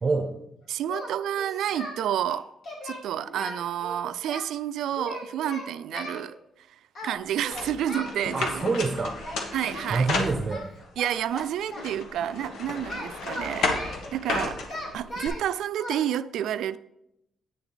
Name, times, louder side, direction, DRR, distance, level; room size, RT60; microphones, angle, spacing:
voice 1, 0.0-0.3 8.3-9.2 9.9-10.6, right 4 dB, 25° right, 0.7 m, -26 dB
voice 2, 0.7-2.5 2.8-6.4 6.7-8.6 9.5-10.1 11.0-14.6 14.9-16.8, right 10 dB, 85° right, 0.3 m, -30 dB
Singing, 0.9-2.0 2.3-4.4 4.9-6.2 6.9-7.2 7.4-8.2 9.2-9.4 9.7-11.9 12.9-15.4 15.8-15.9, left 1 dB, 55° left, 2.6 m, -37 dB
sound 1, 7.5-10.9 11.4-15.3, left 3 dB, 80° left, 1.3 m, -33 dB
9.0 x 7.0 x 3.9 m
cardioid pair, 150°, 0 cm